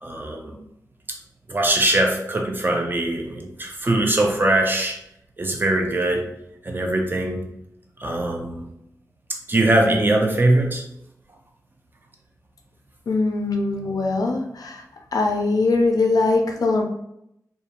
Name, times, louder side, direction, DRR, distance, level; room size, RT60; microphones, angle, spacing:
voice 1, 0.0-0.5 1.5-5.0 5.4-6.3 6.6-7.4 8.0-8.6 9.5-10.8, right 1 dB, 35° right, 1 dB, 0.5 m, -21 dB
voice 2, 13.1-14.8 15.1-16.8, left 3 dB, 80° left, 2 dB, 0.4 m, -21 dB
2.4 x 2.2 x 2.9 m, 0.80 s
wide cardioid pair, 65°, 6 cm